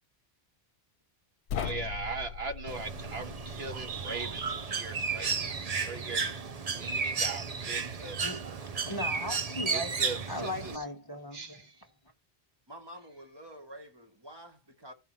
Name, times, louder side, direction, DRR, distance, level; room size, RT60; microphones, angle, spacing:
sound 1, 1.5-4.6, left 9 dB, 85° left, 0.9 m, -40 dB
voice 1, 1.6-5.6 5.9-6.3 6.7-8.4 9.7-10.8 11.3-11.7, right 3 dB, 70° right, 1.5 m, -40 dB
Bird, 2.7-10.8, right 5 dB, 40° right, 0.7 m, -33 dB
voice 2, 8.9-9.9 10.3-11.6, left 1 dB, 20° left, 1.1 m, -37 dB
voice 3, 12.7-14.9, equal, 25° right, 1.4 m, -48 dB
14.5 x 5.4 x 3.0 m
omnidirectional pair, 1.1 m